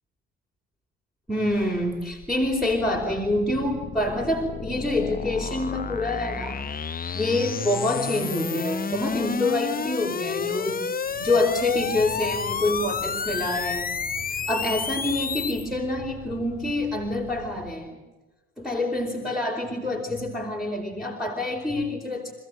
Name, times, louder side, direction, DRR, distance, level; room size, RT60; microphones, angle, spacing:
voice 1, 1.3-6.6 7.1-10.8 11.2-13.9 14.5-17.9 18.6-22.3, left 1 dB, ahead, -2 dB, 4.7 m, -26 dB
sound 1, 1.5-15.7, left 6 dB, 25° left, 0.8 m, -31 dB
sound 2, 11.0-17.7, right 1 dB, 60° right, 7.7 m, -44 dB
27.5 x 16.0 x 9.1 m, 1.2 s
supercardioid pair, 65°, 33 cm